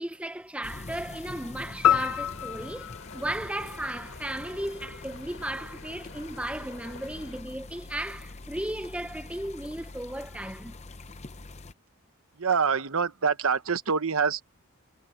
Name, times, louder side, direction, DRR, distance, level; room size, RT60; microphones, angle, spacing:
voice 1, 0.0-10.8, right 1 dB, 5° right, 0.6 m, -35 dB
sound 1, 0.6-11.7, left 3 dB, 30° left, 0.7 m, -44 dB
sound 2, 1.8-4.3, left 10 dB, 85° left, 0.5 m, -28 dB
sound 3, 1.9-7.4, left 3 dB, 65° left, 2.7 m, -47 dB
voice 2, 12.4-14.4, right 5 dB, 75° right, 1.0 m, -25 dB
head